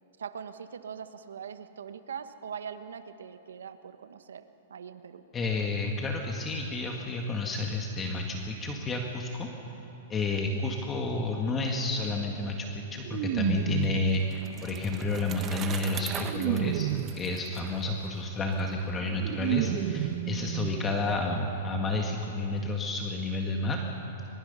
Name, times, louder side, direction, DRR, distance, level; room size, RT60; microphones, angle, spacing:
voice 1, 0.2-4.4 4.7-5.2, right 7 dB, 85° right, 10 dB, 1.2 m, -41 dB
voice 2, 5.3-9.5 10.1-16.9 17.1-23.8, left 2 dB, 20° left, 1 dB, 1.9 m, -30 dB
sound 1, 11.5-11.7 13.0-14.2 14.9-17.3 18.6-18.7 19.0-21.2 21.5-21.6 21.9-22.0, right 14 dB, 50° right, 0.9 m, -32 dB
Bicycle, 13.5-18.6, right 8 dB, 25° right, 1.1 m, -41 dB
23.0 x 22.5 x 5.6 m, 3.0 s
hypercardioid pair, 130°, 0 cm